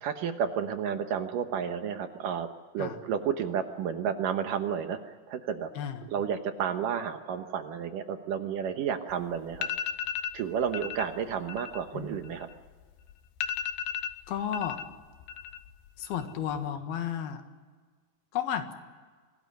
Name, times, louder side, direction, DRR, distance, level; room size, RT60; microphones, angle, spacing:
voice 1, 0.0-2.5 2.7-5.7 6.1-9.7 10.3-12.5, right 7 dB, 65° right, 7 dB, 2.4 m, -31 dB
voice 2, 5.8-6.1 11.9-12.2 14.3-14.8 16.0-17.4 18.3-18.7, left 8 dB, 70° left, 7 dB, 3.5 m, -33 dB
sound 1, 9.1-9.2 9.5-10.4 10.7-11.1 11.4-12.8 13.1-13.2 13.4-14.8 15.1-15.7 16.0-16.6, left 9 dB, 90° left, 3.1 m, -35 dB
25.0 x 18.0 x 9.3 m, 1.5 s
omnidirectional pair, 4.6 m